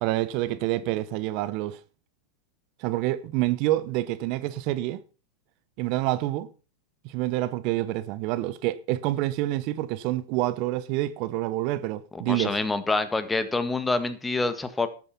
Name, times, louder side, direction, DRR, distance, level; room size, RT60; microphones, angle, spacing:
voice 1, 0.0-1.8 2.8-5.0 5.8-6.5 7.0-12.6, right 16 dB, 50° right, 0.9 m, -27 dB
voice 2, 12.1-14.9, left 3 dB, 10° left, 1.7 m, -26 dB
12.5 x 9.1 x 5.9 m
hypercardioid pair, 110°, 0 cm